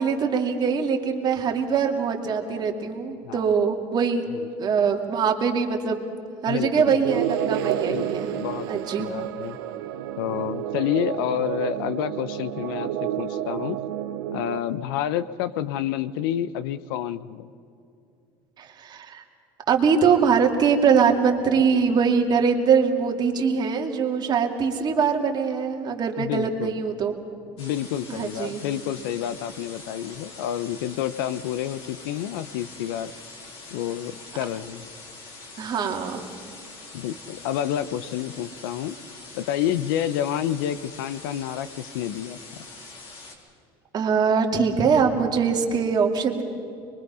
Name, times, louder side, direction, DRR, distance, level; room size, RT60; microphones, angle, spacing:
voice 1, 0.0-6.1 6.4-8.3 8.7-9.1 18.6-19.2 19.7-27.1 28.1-28.6 35.6-36.2 43.9-46.4, right 6 dB, 40° right, 3 dB, 2.5 m, -23 dB
voice 2, 4.3-4.7 6.5-7.0 7.9-8.1 8.4-8.7 9.0-9.6 10.2-13.8 14.3-17.5 26.2-26.8 27.6-33.1 33.7-34.9 36.9-39.0 39.3-42.4, left 11 dB, 85° left, 15 dB, 0.9 m, -29 dB
sound 1, 7.0-14.6, right 11 dB, 90° right, 1.0 m, -30 dB
sound 2, 27.6-43.4, left 3 dB, 55° left, 4.5 m, -44 dB
24.5 x 22.5 x 5.7 m, 2.6 s
supercardioid pair, 115°, 11 cm